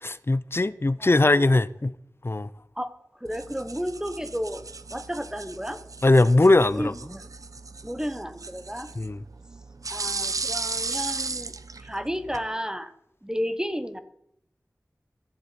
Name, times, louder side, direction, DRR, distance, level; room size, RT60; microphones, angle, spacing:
voice 1, 0.0-1.9 2.2-2.5 6.0-6.9 9.0-9.2, left 2 dB, 45° left, 0.6 m, -20 dB
voice 2, 1.0-1.5 2.8-2.9 3.2-4.6 4.9-5.8 6.7-7.2 7.8-8.9 9.9-11.5 11.8-12.9 13.2-14.0, equal, 10° right, 1.1 m, -32 dB
sound 1, 3.2-12.5, right 3 dB, 85° right, 0.6 m, -36 dB
14.0 x 7.4 x 8.3 m
wide cardioid pair, 45°, 6 cm